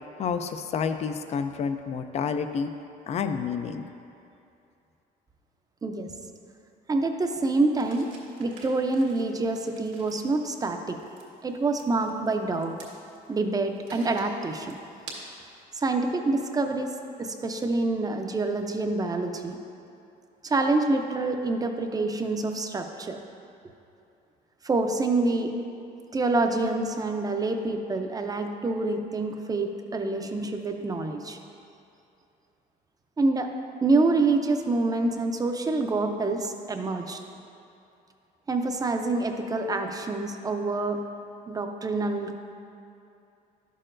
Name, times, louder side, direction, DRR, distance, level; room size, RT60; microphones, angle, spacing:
voice 1, 0.2-2.7 3.1-3.8, left 6 dB, 40° left, 8 dB, 0.4 m, -29 dB
voice 2, 6.9-8.1 8.4-11.0 11.4-12.7 13.3-14.8 15.8-16.9 17.2-19.6 20.4-23.2 24.6-25.5 26.1-31.4 33.2-33.5 33.8-37.2 38.5-41.0 41.5-42.4, right 3 dB, 20° right, 5 dB, 0.6 m, -26 dB
sound 1, 7.7-15.6, right 3 dB, 90° right, 1.7 m, -49 dB
11.0 x 6.6 x 2.5 m, 2.7 s
cardioid pair, 110°, 17 cm